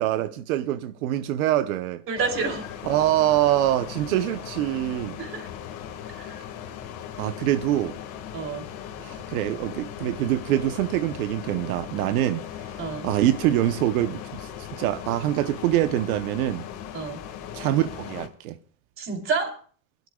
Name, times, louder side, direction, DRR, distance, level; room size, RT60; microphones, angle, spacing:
voice 1, 0.0-2.0 2.8-5.2 7.2-8.0 9.0-12.4 13.0-16.6 17.5-18.5, right 13 dB, 90° right, 0.9 m, -24 dB
voice 2, 2.1-2.7 5.2-5.5 6.2-6.3 8.3-8.7 12.8-13.1 16.9-17.2 19.0-19.6, right 5 dB, 30° right, 3.1 m, -28 dB
sound 1, 2.2-18.3, left 9 dB, 45° left, 1.8 m, -38 dB
25.0 x 12.5 x 2.3 m
supercardioid pair, 155°, 41 cm